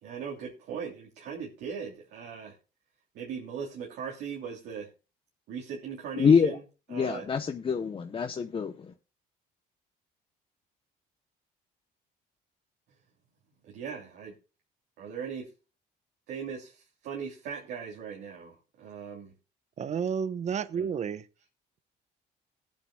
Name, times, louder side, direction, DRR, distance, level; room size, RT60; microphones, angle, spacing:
voice 1, 0.0-2.6 3.1-4.9 5.5-6.6 6.9-7.3 13.6-14.3 15.0-15.5 16.3-19.3 20.7-20.9, right 6 dB, 75° right, -2 dB, 3.0 m, -39 dB
voice 2, 6.2-6.6 6.9-8.9, left 6 dB, 30° left, 6 dB, 0.8 m, -25 dB
voice 3, 19.8-21.3, right 7 dB, 45° right, 15 dB, 0.9 m, -31 dB
19.5 x 8.8 x 2.3 m, 0.32 s
cardioid pair, 110°, 17 cm